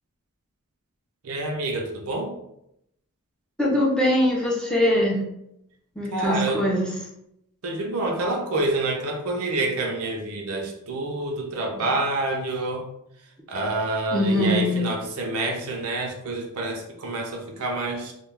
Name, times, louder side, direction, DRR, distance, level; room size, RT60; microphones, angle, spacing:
voice 1, 1.2-2.3 6.1-6.6 7.6-12.9 13.5-18.1, right 2 dB, 75° right, 2 dB, 0.5 m, -27 dB
voice 2, 3.6-5.2 6.0-6.9 11.8-11.9 14.1-14.8, left 1 dB, 5° left, -4 dB, 0.5 m, -22 dB
2.3 x 2.2 x 3.2 m, 0.80 s
head